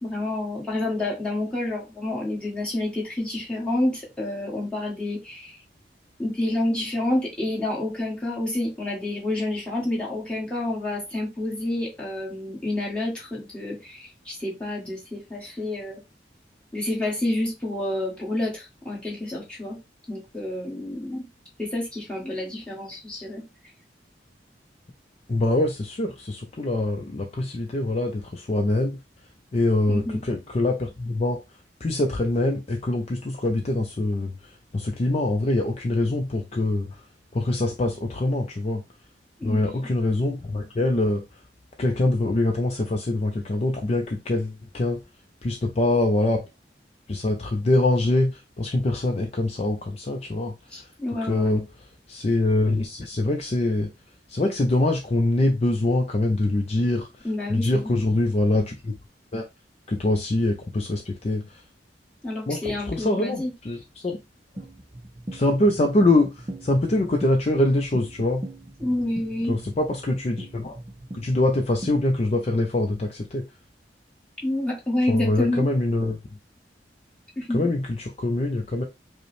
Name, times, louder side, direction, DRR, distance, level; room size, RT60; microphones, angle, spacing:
voice 1, 0.0-5.6 6.2-16.0 16.7-19.8 20.1-21.3 21.6-23.4 29.9-30.2 39.4-39.8 50.7-51.6 57.2-58.0 62.2-63.5 68.8-69.5 74.4-75.7 77.4-77.7, left 1 dB, 5° left, 1.5 m, -28 dB
voice 2, 25.3-29.0 29.5-31.4 31.8-37.0 37.3-38.8 39.4-41.2 41.8-45.0 45.4-46.5 47.1-50.9 51.3-51.7 52.1-53.9 54.3-58.9 59.3-59.4 59.9-61.6 62.5-64.2 65.3-68.4 69.4-70.8 71.1-73.4 75.1-76.2 77.5-78.8, left 2 dB, 35° left, 0.4 m, -24 dB
sound 1, 64.6-72.3, right 1 dB, 25° right, 0.5 m, -40 dB
5.1 x 2.1 x 3.1 m
head